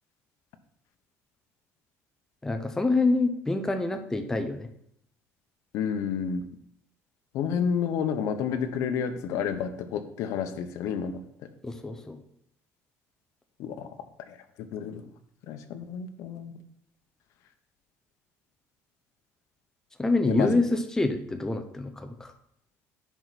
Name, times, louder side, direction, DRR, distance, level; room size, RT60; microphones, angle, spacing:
voice 1, 2.4-4.7 11.6-12.2 20.0-22.3, left 2 dB, 10° left, 7 dB, 0.7 m, -26 dB
voice 2, 5.7-6.4 7.3-11.1 13.6-13.9 14.7-15.0 15.5-16.5 20.2-20.6, left 7 dB, 75° left, 8 dB, 0.9 m, -30 dB
10.5 x 4.6 x 4.1 m, 0.71 s
cardioid pair, 135°, 5 cm